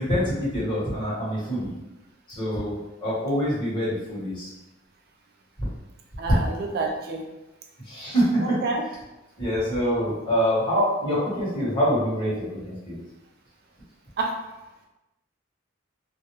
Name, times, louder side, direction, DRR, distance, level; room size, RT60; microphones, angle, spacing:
voice 1, 0.0-1.7 2.3-4.5 7.9-8.6 9.4-13.0, equal, 25° left, -10 dB, 1.1 m, -25 dB
voice 2, 6.2-7.2 8.4-8.8 14.2-14.4, right 3 dB, 55° right, 1 dB, 0.4 m, -28 dB
2.3 x 2.0 x 2.9 m, 1.0 s
head